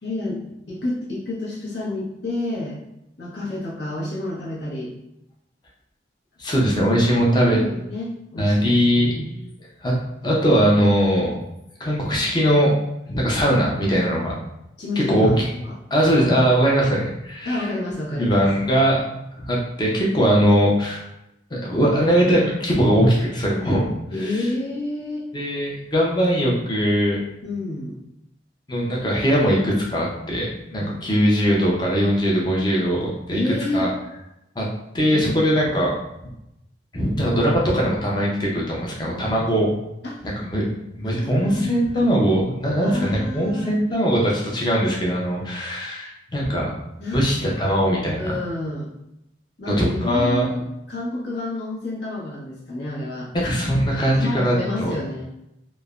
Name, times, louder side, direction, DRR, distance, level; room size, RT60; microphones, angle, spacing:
voice 1, 0.0-2.8 3.2-4.9 7.0-9.5 14.8-15.8 17.4-18.5 24.1-25.3 27.4-28.0 30.8-31.4 33.3-33.9 35.0-35.5 39.1-39.4 40.0-40.3 41.0-41.9 42.8-43.7 47.0-47.3 47.6-47.8 48.2-48.9 49.6-53.3 54.0-55.2, left 2 dB, 65° left, -6 dB, 0.7 m, -29 dB
voice 2, 6.4-7.6 8.4-9.1 9.8-10.0 10.2-11.3 11.8-12.7 13.1-14.3 15.1-15.3 15.9-17.7 18.1-19.0 19.4-21.0 21.5-23.9 24.2-24.5 25.3-27.2 28.7-33.4 33.7-33.9 34.6-34.7 34.9-35.9 36.9-39.7 40.4-46.7 47.1-48.4 49.7-50.5 53.3-54.9, equal, 25° left, -3 dB, 0.5 m, -20 dB
3.1 x 2.0 x 2.4 m, 0.86 s
head